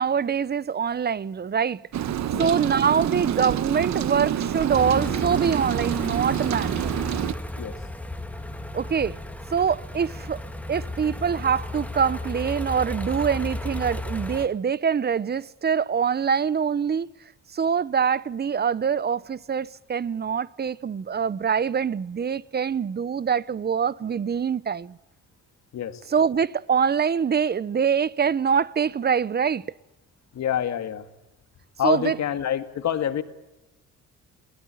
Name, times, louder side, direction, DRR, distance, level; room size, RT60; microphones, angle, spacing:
voice 1, 0.0-1.8 2.4-7.1 8.7-9.2 9.5-10.4 10.7-17.1 17.5-25.0 26.1-29.6 31.8-32.2, right 7 dB, 35° right, 0.8 m, -24 dB
Rain, 1.9-7.3, right 10 dB, 65° right, 1.2 m, -27 dB
sound 1, 4.7-14.5, left 1 dB, 5° left, 1.9 m, -34 dB
voice 2, 30.3-31.1 31.8-33.2, left 9 dB, 65° left, 2.0 m, -27 dB
21.5 x 18.0 x 9.0 m
cardioid pair, 90°, 30 cm